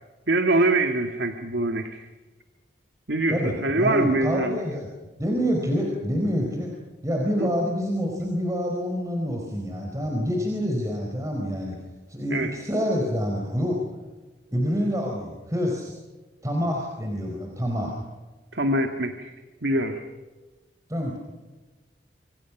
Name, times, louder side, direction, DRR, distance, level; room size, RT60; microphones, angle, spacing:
voice 1, 0.3-2.1 3.1-4.6 7.4-7.5 12.3-12.5 18.5-19.3 19.6-20.0, right 2 dB, 75° right, 6 dB, 2.0 m, -24 dB
voice 2, 3.3-4.9 5.2-6.7 7.0-11.8 12.1-13.8 14.5-15.9 16.4-17.9 20.9-21.2, equal, 20° right, 0 dB, 4.4 m, -27 dB
28.0 x 26.5 x 6.1 m, 1.2 s
head